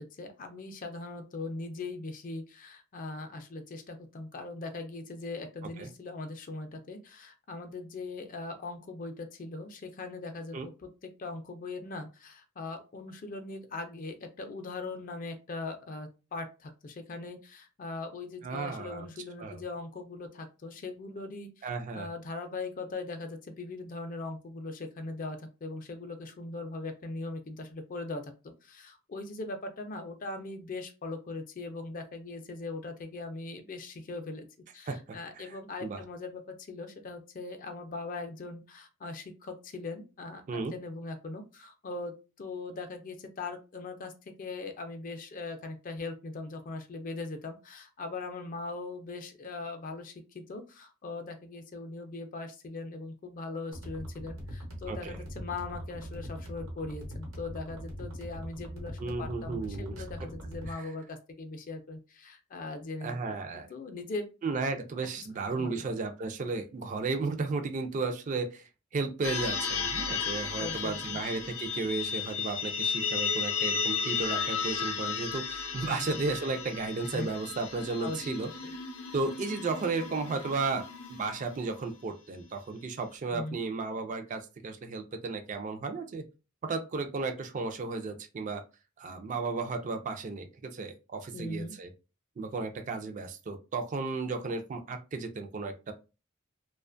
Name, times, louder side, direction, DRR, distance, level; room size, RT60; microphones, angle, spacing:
voice 1, 0.0-10.9 11.2-21.7 21.9-34.5 34.7-44.1 44.4-64.3 65.5-65.8 70.6-71.2 75.8-76.1 77.0-77.3 78.0-78.7 83.3-83.6 91.3-91.7, left 3 dB, 40° left, 7 dB, 0.4 m, -40 dB
voice 2, 18.4-19.1 19.4-19.6 21.6-22.1 34.9-36.0 40.5-40.7 54.9-55.2 59.0-60.1 60.7-60.9 63.0-63.7 64.4-68.6 68.9-78.8 79.1-86.2 86.6-88.6 89.0-91.9 92.4-95.9, right 3 dB, 40° right, 6 dB, 0.3 m, -34 dB
sound 1, 53.7-60.7, equal, 85° right, 0.9 m, -41 dB
sound 2, 69.2-81.8, left 6 dB, 90° left, 0.6 m, -34 dB
2.4 x 2.2 x 2.5 m, 0.31 s
head